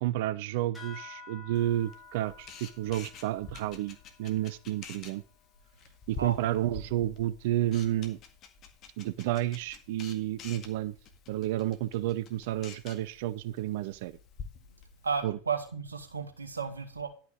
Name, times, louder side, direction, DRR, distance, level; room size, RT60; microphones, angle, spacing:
voice 1, 0.0-5.2 6.1-8.2 9.0-10.9 11.3-14.2 15.2-15.4, right 14 dB, 60° right, 0.5 m, -31 dB
sound 1, 0.7-5.7, left 4 dB, 15° left, 5.1 m, -52 dB
Camera, 1.5-15.2, left 6 dB, 40° left, 1.8 m, -49 dB
voice 2, 6.2-6.6 15.0-17.1, right 6 dB, 85° right, 1.7 m, -34 dB
11.5 x 5.6 x 5.1 m
figure-of-eight pair, 85°, 0 cm